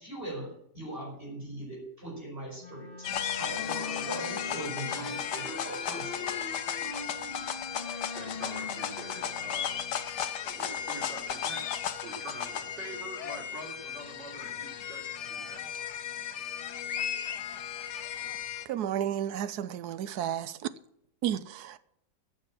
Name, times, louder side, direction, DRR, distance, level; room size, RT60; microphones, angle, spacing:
voice 1, 0.0-2.9 3.4-6.5, right 1 dB, 30° right, 4.9 m, -40 dB
Wind instrument woodwind instrument, 2.6-10.1, left 3 dB, 30° left, 1.9 m, -42 dB
sound 1, 3.0-18.7, left 9 dB, 75° left, 1.5 m, -35 dB
voice 2, 8.1-9.8 10.4-15.6, right 2 dB, 85° right, 4.2 m, -45 dB
voice 3, 18.7-20.6 21.2-21.8, right 10 dB, 70° right, 1.2 m, -32 dB
15.0 x 6.6 x 7.5 m
omnidirectional pair, 1.9 m